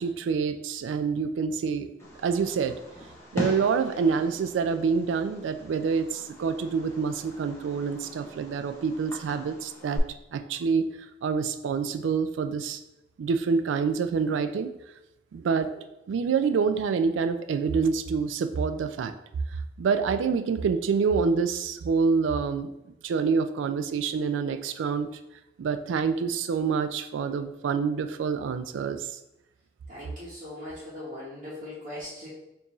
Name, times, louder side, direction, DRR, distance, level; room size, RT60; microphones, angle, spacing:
voice 1, 0.0-1.9 2.2-2.8 3.3-10.0 10.3-10.9 11.2-12.8 13.2-14.7 15.3-19.1 19.8-22.7 23.0-25.1 25.6-29.2, right 5 dB, 90° right, 10 dB, 0.3 m, -27 dB
Fireworks, 2.0-10.0, equal, 15° left, 0.7 m, -40 dB
voice 2, 29.9-32.3, left 1 dB, 45° right, -10 dB, 1.0 m, -40 dB
4.4 x 2.7 x 3.0 m, 0.92 s
head